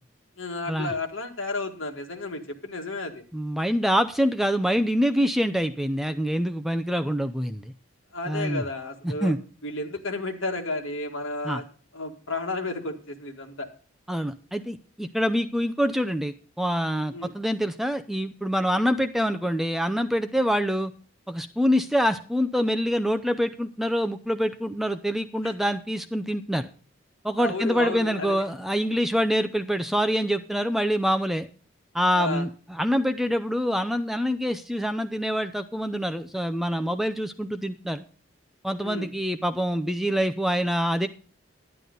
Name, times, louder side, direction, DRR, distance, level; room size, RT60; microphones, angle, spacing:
voice 1, 0.4-3.2 8.1-9.3 9.6-11.6 11.9-13.7 17.1-17.3 25.4-25.5 27.4-28.4 32.1-32.5 38.8-39.1, left 2 dB, 70° left, 4 dB, 1.9 m, -32 dB
voice 2, 3.3-7.7 8.3-8.6 9.0-9.4 11.4-11.6 14.1-20.9 21.3-26.7 27.2-31.5 31.9-38.0 38.6-41.1, equal, ahead, 9 dB, 0.5 m, -25 dB
11.0 x 11.0 x 3.9 m, 0.39 s
head